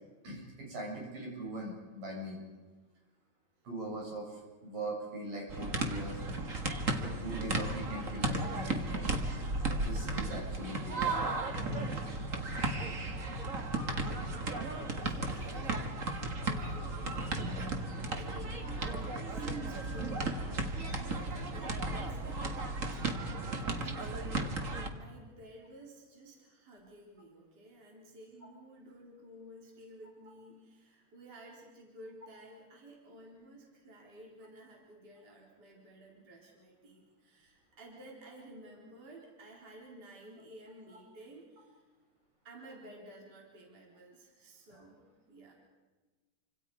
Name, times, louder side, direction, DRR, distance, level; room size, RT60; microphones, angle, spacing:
voice 1, 0.2-2.4 3.7-6.2 7.0-9.2 9.8-11.1 44.7-44.8, right 1 dB, 60° right, -2 dB, 8.6 m, -41 dB
sound 1, 5.5-24.9, right 2 dB, 45° right, 1.0 m, -35 dB
voice 2, 13.5-17.6 18.2-22.5 23.8-24.5 24.9-41.8 42.4-45.0 45.3-45.5, right 1 dB, 25° right, -2 dB, 4.5 m, -53 dB
29.0 x 26.0 x 5.0 m, 1.3 s
omnidirectional pair, 4.3 m